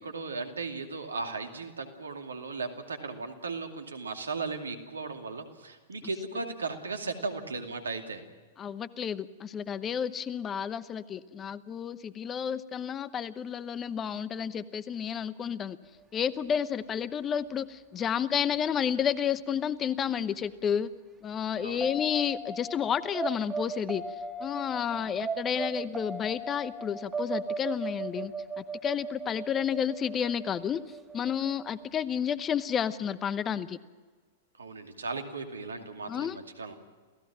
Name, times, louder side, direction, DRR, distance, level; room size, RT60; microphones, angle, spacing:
voice 1, 0.0-8.2 21.6-21.9 24.9-25.1 34.6-36.8, right 3 dB, 80° right, 5 dB, 2.5 m, -37 dB
voice 2, 8.6-15.8 16.1-20.9 21.2-24.0 24.4-30.8 31.1-33.8 36.1-36.4, left 8 dB, 25° left, 16 dB, 0.9 m, -31 dB
sound 1, 21.8-32.0, right 3 dB, 15° right, 1.8 m, -37 dB
29.0 x 16.5 x 6.0 m, 1.4 s
figure-of-eight pair, 100°, 0 cm